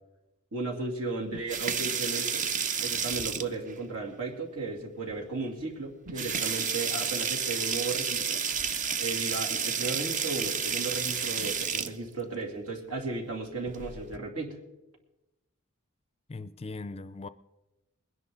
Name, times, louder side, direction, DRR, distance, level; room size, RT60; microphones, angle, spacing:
voice 1, 0.5-2.4 2.8-8.4 9.0-14.6, right 3 dB, 75° right, 2.7 m, -35 dB
sound 1, 1.3-3.7 5.1-5.2 5.6-5.7 6.1-11.9 13.6-14.2, right 6 dB, 35° right, 0.6 m, -31 dB
voice 2, 16.3-17.3, left 3 dB, 25° left, 0.5 m, -39 dB
21.0 x 10.5 x 3.8 m
head